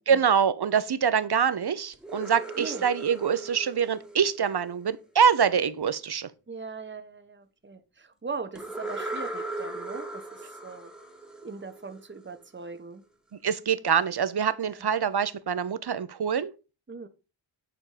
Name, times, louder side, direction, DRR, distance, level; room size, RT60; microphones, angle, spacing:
voice 1, 0.1-6.3 13.4-16.5, right 7 dB, 55° right, 0.8 m, -25 dB
sound 1, 1.9-4.9 8.5-12.3, right 2 dB, ahead, 1.3 m, -38 dB
voice 2, 6.5-10.9 11.4-13.0 14.6-14.8 16.9-17.1, right 4 dB, 25° right, 1.0 m, -40 dB
9.1 x 4.4 x 4.9 m
wide cardioid pair, 80°, 47 cm